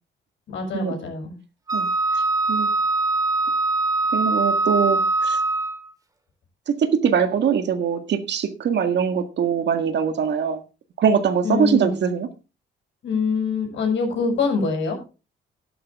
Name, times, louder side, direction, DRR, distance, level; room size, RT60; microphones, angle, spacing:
voice 1, 0.5-1.4 11.4-11.9 13.0-15.0, left 4 dB, 70° left, 6.4 m, -24 dB
Wind instrument woodwind instrument, 1.7-5.9, right 3 dB, 20° right, 2.7 m, -22 dB
voice 2, 4.1-5.4 6.7-10.6 11.0-12.3, right 7 dB, 60° right, 1.8 m, -22 dB
12.5 x 11.0 x 3.6 m
cardioid pair, 90°, 20 cm